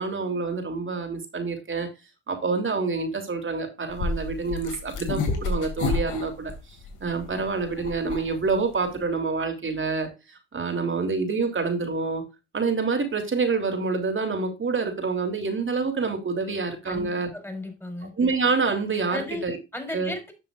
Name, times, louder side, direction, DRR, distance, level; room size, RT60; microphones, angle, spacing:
voice 1, 0.0-1.9 2.3-6.5 7.0-12.2 12.5-17.3 18.2-19.6 19.9-20.1, right 4 dB, 40° right, 3.2 m, -27 dB
sound 1, 3.9-9.0, left 4 dB, 80° left, 2.5 m, -30 dB
voice 2, 16.8-18.1 19.1-19.4 19.7-20.3, left 1 dB, 10° left, 4.8 m, -35 dB
12.0 x 6.8 x 2.5 m
supercardioid pair, 60°, 30 cm